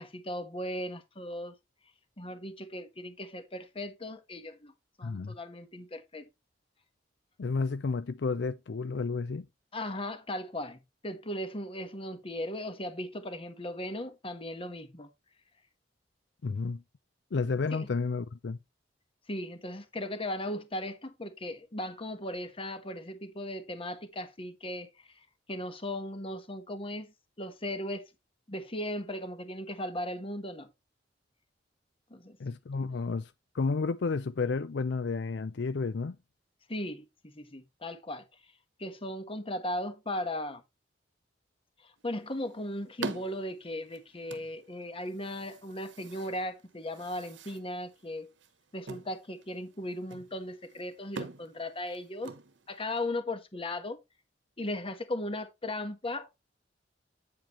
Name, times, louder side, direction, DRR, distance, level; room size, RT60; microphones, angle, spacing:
voice 1, 0.0-1.5 2.2-4.7 5.0-6.3 9.7-15.1 17.7-17.9 19.3-24.9 25.5-28.1 28.5-30.7 32.1-32.4 36.7-38.2 38.8-40.6 42.0-48.3 48.7-52.3 52.7-54.0 54.6-56.3, left 1 dB, 30° left, 1.4 m, -37 dB
voice 2, 5.0-5.3 7.4-9.5 16.4-16.8 17.3-18.6 32.4-36.2, left 4 dB, 70° left, 0.5 m, -31 dB
sound 1, 42.0-53.1, right 4 dB, 80° right, 1.1 m, -46 dB
8.9 x 7.6 x 3.1 m
head